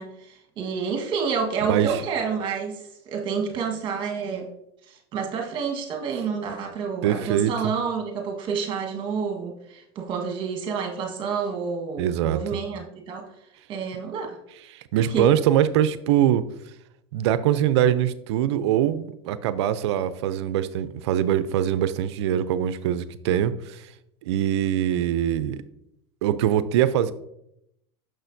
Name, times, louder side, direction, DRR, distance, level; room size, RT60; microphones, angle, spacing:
voice 1, 0.0-4.5 4.9-13.3 13.7-14.4 15.0-15.3, right 6 dB, 35° right, 2 dB, 1.4 m, -29 dB
voice 2, 1.6-2.0 7.0-7.7 12.0-12.4 14.7-16.4 17.1-23.9 24.2-25.6 26.2-27.1, right 10 dB, 75° right, 15 dB, 0.5 m, -23 dB
6.3 x 6.3 x 2.6 m, 0.79 s
supercardioid pair, 125°, 14 cm